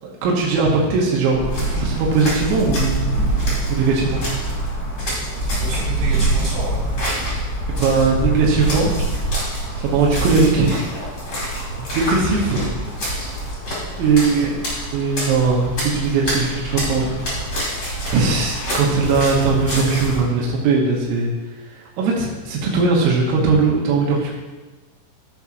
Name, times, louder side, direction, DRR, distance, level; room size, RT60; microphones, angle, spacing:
voice 1, 0.0-3.2 3.7-4.2 7.7-9.0 9.8-10.9 11.9-12.7 14.0-14.5 14.9-17.0 18.1-21.3 21.7-24.3, right 4 dB, 85° right, -2 dB, 3.9 m, -19 dB
sound 1, 1.3-20.2, right 2 dB, 65° right, 3.8 m, -26 dB
sound 2, 1.4-20.2, left 1 dB, 30° left, 3.2 m, -29 dB
voice 2, 5.3-6.9 12.4-12.5 14.0-14.5, right 2 dB, 50° right, -7 dB, 4.0 m, -33 dB
14.5 x 7.3 x 3.1 m, 1.2 s
omnidirectional pair, 5.9 m